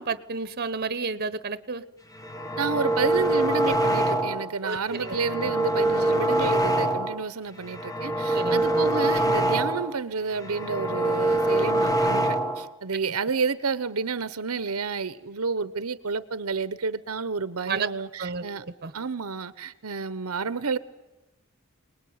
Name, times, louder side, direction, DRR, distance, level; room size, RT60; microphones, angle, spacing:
voice 1, 0.0-1.8 4.6-5.1 8.3-8.9 17.7-17.9 18.2-18.9, right 4 dB, 45° right, 14 dB, 1.1 m, -31 dB
sound 1, 2.2-4.5 4.9-7.3 7.6-10.0 10.3-12.7, right 1 dB, 15° left, 1.3 m, -24 dB
voice 2, 2.6-18.6 18.9-20.8, right 5 dB, 80° right, 14 dB, 1.0 m, -30 dB
27.0 x 20.0 x 9.5 m, 1.1 s
head